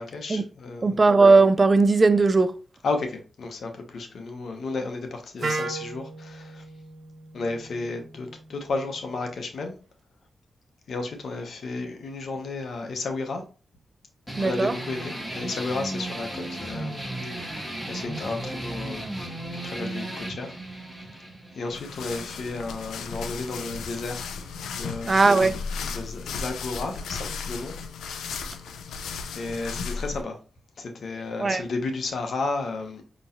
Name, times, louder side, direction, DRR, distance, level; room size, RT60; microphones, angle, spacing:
voice 1, 0.0-1.0 2.8-6.6 7.3-9.7 10.9-13.4 14.4-17.6 17.9-20.5 21.5-24.3 24.7-25.1 25.8-27.8 28.2-28.6 29.3-30.4 30.8-33.0, left 3 dB, 75° left, 1.0 m, -33 dB
voice 2, 0.8-2.6 14.4-14.7 25.1-25.6 31.4-31.6, right 3 dB, 45° right, 0.4 m, -18 dB
Wind instrument woodwind instrument, 5.4-9.3, right 3 dB, 65° right, 1.1 m, -36 dB
sound 1, 14.3-23.3, right 1 dB, 10° left, 2.2 m, -35 dB
sound 2, 21.7-30.2, left 5 dB, 90° left, 0.4 m, -35 dB
5.3 x 3.1 x 2.6 m
supercardioid pair, 45°, 0 cm